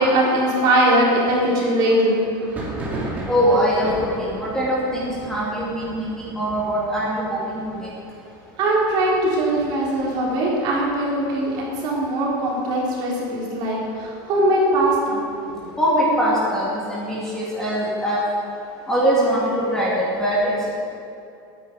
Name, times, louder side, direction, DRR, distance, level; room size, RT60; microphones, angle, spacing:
voice 1, 0.0-2.3 8.6-15.7, right 1 dB, 40° right, -4 dB, 3.6 m, -21 dB
Thunder, 2.4-11.9 12.2-12.8 13.1-14.1 14.5-16.2, right 1 dB, 15° right, 2.7 m, -37 dB
voice 2, 3.3-7.9 15.8-18.2 18.9-20.7, equal, 5° left, -8 dB, 2.8 m, -22 dB
21.5 x 9.9 x 5.2 m, 2.7 s
supercardioid pair, 180°, 11 cm